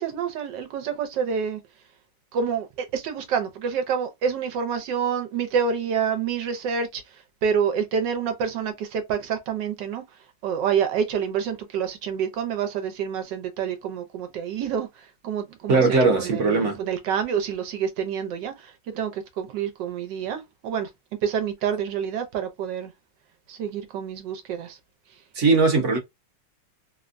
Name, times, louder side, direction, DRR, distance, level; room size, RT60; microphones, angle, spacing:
voice 1, 0.0-1.6 2.3-7.0 7.4-10.0 10.4-14.9 15.2-15.9 16.2-20.9 21.2-22.9 23.5-24.8, right 7 dB, 80° right, 1.3 m, -27 dB
voice 2, 15.7-16.8 25.3-26.0, right 3 dB, 50° right, 1.1 m, -19 dB
3.4 x 2.1 x 2.5 m
omnidirectional pair, 1.9 m